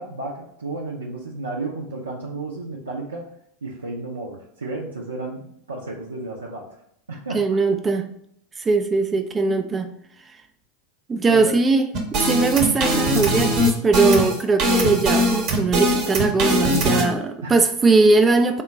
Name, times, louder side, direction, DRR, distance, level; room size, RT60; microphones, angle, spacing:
voice 1, 0.0-3.3 3.6-6.7 7.1-7.5 11.3-11.6 17.4-17.7, right 2 dB, 80° right, -3 dB, 0.5 m, -32 dB
voice 2, 7.3-8.1 8.6-9.9 11.1-11.9 12.2-18.6, right 3 dB, 20° right, 7 dB, 0.3 m, -20 dB
sound 1, 11.9-17.0, equal, 45° right, 0.8 m, -20 dB
3.7 x 2.2 x 4.0 m, 0.69 s
figure-of-eight pair, 85°, 0 cm